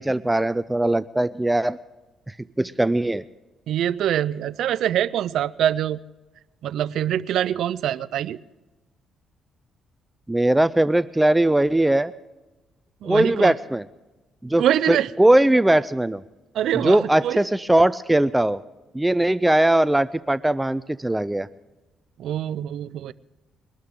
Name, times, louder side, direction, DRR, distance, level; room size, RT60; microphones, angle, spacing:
voice 1, 0.0-1.8 2.3-3.2 10.3-12.1 13.0-13.8 14.4-16.2 16.7-18.6 18.9-21.5, right 1 dB, 10° right, 15 dB, 0.4 m, -20 dB
voice 2, 3.7-6.0 6.6-8.4 13.0-13.5 14.6-15.1 16.5-17.4 22.2-23.1, right 11 dB, 75° right, 17 dB, 0.4 m, -24 dB
22.5 x 13.0 x 3.7 m, 1.1 s
cardioid pair, 90°, 0 cm